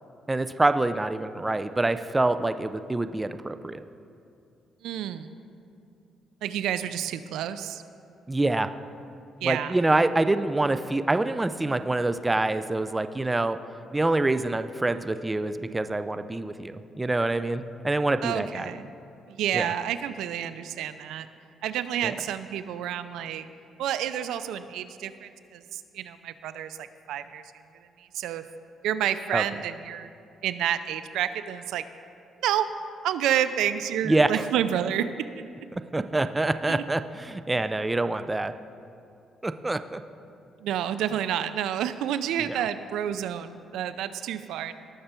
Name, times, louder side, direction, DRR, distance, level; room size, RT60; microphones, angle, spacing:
voice 1, 0.3-3.8 8.3-8.7 9.4-13.6 13.9-18.7 19.5-19.7 22.0-22.1 29.3-29.4 34.0-34.5 35.7-38.5 39.4-40.0, right 2 dB, 15° right, 11 dB, 0.4 m, -26 dB
voice 2, 4.8-5.3 6.4-7.8 9.4-9.8 18.2-18.9 19.3-21.3 21.6-23.5 23.8-27.4 28.0-28.4 28.8-30.1 30.4-31.8 32.4-32.7 33.0-35.1 36.7-36.8 40.6-44.7, right 10 dB, 85° right, 12 dB, 0.4 m, -29 dB
18.5 x 6.6 x 4.4 m, 2.6 s
cardioid pair, 90°, 0 cm